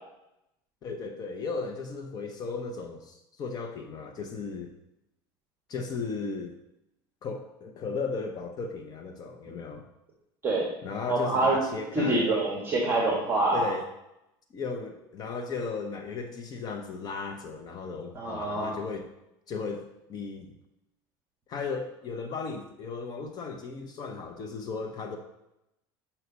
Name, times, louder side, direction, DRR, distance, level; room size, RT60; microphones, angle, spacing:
voice 1, 0.8-4.7 5.7-6.5 7.2-9.8 10.8-12.3 13.5-13.9 14.5-19.1 19.5-19.8 20.1-20.5 21.5-25.2, left 4 dB, 35° left, 5 dB, 0.7 m, -36 dB
voice 2, 10.4-10.8 11.1-11.6 11.9-13.7 18.1-18.8, right 2 dB, 20° right, -2 dB, 1.6 m, -26 dB
7.9 x 5.7 x 4.0 m, 0.87 s
supercardioid pair, 140°, 12 cm